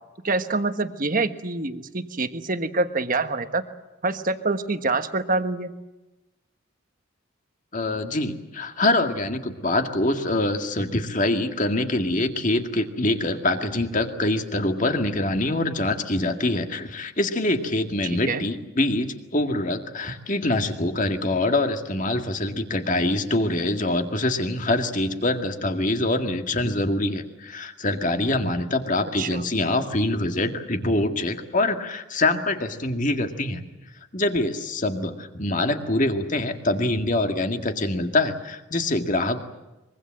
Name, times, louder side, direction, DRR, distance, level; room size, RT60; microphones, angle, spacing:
voice 1, 0.2-3.6 4.0-5.7 18.0-18.4 29.2-29.5, right 3 dB, 40° right, 9 dB, 1.3 m, -26 dB
voice 2, 7.7-33.6 34.1-39.4, left 2 dB, 35° left, 6 dB, 2.0 m, -24 dB
24.0 x 23.0 x 7.7 m, 1.1 s
head